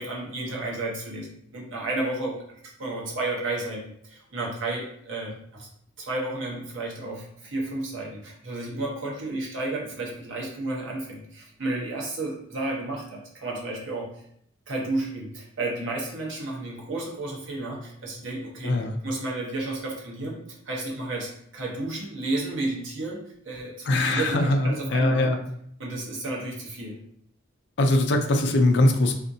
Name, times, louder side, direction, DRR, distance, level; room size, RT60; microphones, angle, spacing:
voice 1, 0.0-5.7 6.0-14.1 14.7-25.3 25.8-27.0, right 2 dB, 75° right, -2 dB, 0.9 m, -32 dB
voice 2, 18.6-18.9 23.9-25.4 27.8-29.1, left 2 dB, 60° left, 5 dB, 0.4 m, -21 dB
3.5 x 2.5 x 2.7 m, 0.68 s
head